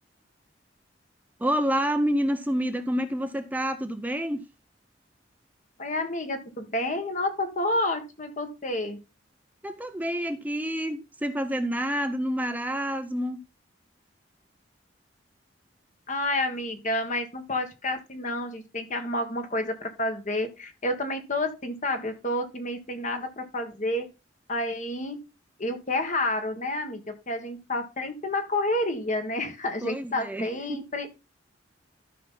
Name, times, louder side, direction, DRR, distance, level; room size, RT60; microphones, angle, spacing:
voice 1, 1.4-4.4 9.6-13.4 29.8-30.8, equal, 10° right, 0.7 m, -28 dB
voice 2, 5.8-9.0 16.1-24.1 24.5-25.2 25.6-31.1, left 1 dB, 45° left, 1.7 m, -29 dB
12.5 x 5.8 x 3.9 m
head